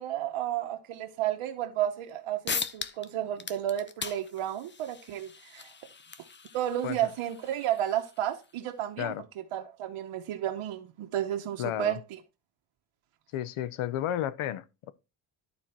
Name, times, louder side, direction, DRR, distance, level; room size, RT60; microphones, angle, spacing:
voice 1, 0.0-5.7 6.5-9.1 9.5-12.0, right 11 dB, 90° right, 1.0 m, -32 dB
sound 1, 2.1-2.2 2.5-3.1 3.4-8.5, left 5 dB, 25° left, 0.6 m, -39 dB
voice 2, 11.6-12.0 13.3-14.9, left 12 dB, 80° left, 0.8 m, -32 dB
11.5 x 4.5 x 4.4 m
cardioid pair, 125°, 49 cm